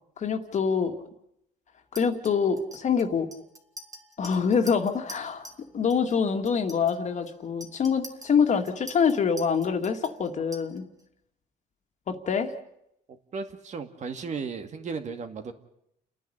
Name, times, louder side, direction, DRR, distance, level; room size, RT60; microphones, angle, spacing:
voice 1, 0.2-1.0 1.9-3.3 4.2-5.5 5.7-10.8 12.1-12.5, left 6 dB, 45° left, 6 dB, 2.2 m, -25 dB
Chink clink, 1.9-5.6 5.9-6.2 6.4-11.0, equal, 20° right, 2.5 m, -46 dB
voice 2, 13.1-15.5, right 5 dB, 45° right, 7 dB, 2.2 m, -35 dB
30.0 x 10.0 x 10.0 m, 0.79 s
cardioid pair, 110°, 17 cm